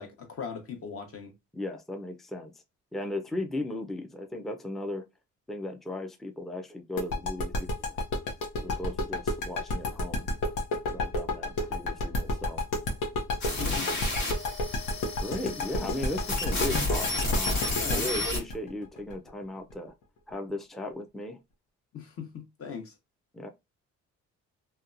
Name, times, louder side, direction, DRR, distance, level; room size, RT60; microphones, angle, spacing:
voice 1, 0.0-1.3 13.5-13.9 17.8-18.1 21.9-22.9, left 6 dB, 50° left, 0.9 m, -39 dB
voice 2, 1.5-2.5 2.9-5.1 5.5-8.0 8.6-10.3 10.9-12.6 13.7-14.0 15.2-19.9 20.3-21.4 23.3-23.5, left 1 dB, ahead, 0.4 m, -36 dB
sound 1, 7.0-19.7, left 1 dB, 90° left, 0.7 m, -30 dB
sound 2, 13.4-18.4, left 2 dB, 70° left, 1.3 m, -31 dB
2.8 x 2.2 x 2.4 m
cardioid pair, 90°, 30 cm